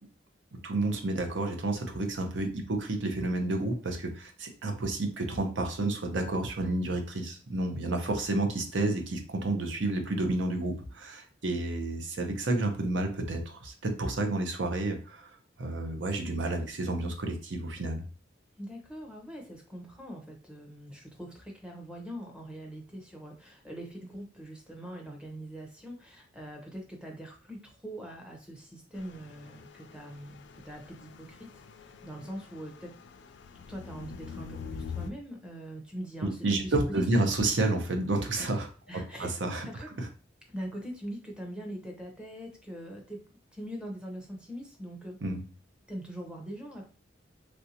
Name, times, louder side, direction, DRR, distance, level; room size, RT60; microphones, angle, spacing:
voice 1, 0.6-15.3 15.6-18.0 36.2-38.7 39.2-39.7 40.0-40.1 45.2-45.4, right 2 dB, 70° right, 4 dB, 0.7 m, -30 dB
voice 2, 18.6-33.0 33.7-37.3 38.9-39.3 39.6-39.9 40.5-43.2 43.5-45.2 45.9-46.9, equal, 5° right, 0 dB, 0.7 m, -42 dB
sound 1, 28.9-35.1, left 5 dB, 65° left, 0.3 m, -45 dB
3.2 x 2.6 x 2.8 m, 0.36 s
head